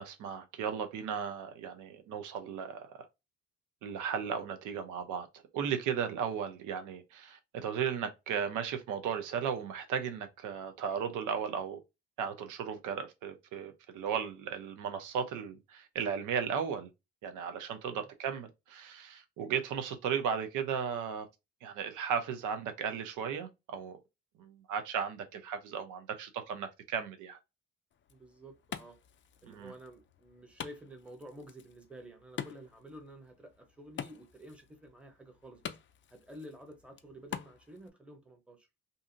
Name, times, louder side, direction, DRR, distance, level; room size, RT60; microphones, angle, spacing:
voice 1, 0.0-3.1 3.8-11.8 12.2-16.9 17.2-21.3 21.6-24.0 24.4-27.4 29.4-29.7, right 7 dB, 85° right, 0.7 m, -36 dB
Wood, 27.9-37.9, left 9 dB, 40° left, 0.4 m, -47 dB
voice 2, 28.1-29.0 29.4-35.8 36.1-38.7, equal, 5° right, 0.8 m, -51 dB
2.7 x 2.5 x 2.5 m
cardioid pair, 90°, 30 cm